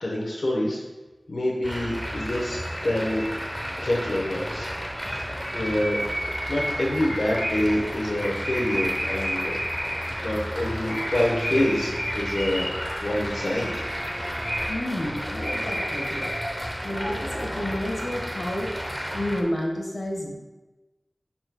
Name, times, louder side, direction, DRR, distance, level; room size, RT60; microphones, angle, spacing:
voice 1, 0.0-0.8 1.3-3.3 3.8-4.7 5.0-6.1 6.5-9.5 10.2-12.7 13.0-13.7, left 1 dB, 75° left, -2 dB, 1.1 m, -26 dB
sound 1, 1.6-19.4, equal, 5° right, 0.9 m, -31 dB
voice 2, 14.7-16.3 16.8-18.7 19.1-20.4, left 1 dB, 55° left, -1 dB, 1.4 m, -30 dB
10.5 x 4.3 x 2.3 m, 1.1 s
wide cardioid pair, 75°, 0 cm